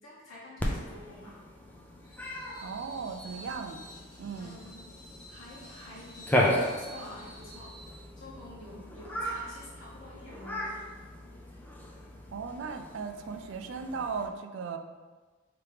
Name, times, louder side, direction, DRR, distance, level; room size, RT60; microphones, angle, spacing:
voice 1, 0.0-1.4 3.3-3.6 4.3-4.8 5.3-11.0, left 1 dB, 75° left, -10 dB, 1.1 m, -48 dB
Cat, 0.6-14.3, left 1 dB, 10° left, 0.4 m, -36 dB
Screech, 2.0-8.1, right 1 dB, 25° left, 0.9 m, -51 dB
voice 2, 2.6-3.8 4.2-4.6 12.3-14.8, right 5 dB, 65° right, 6 dB, 0.4 m, -37 dB
3.3 x 2.9 x 4.7 m, 1.3 s
head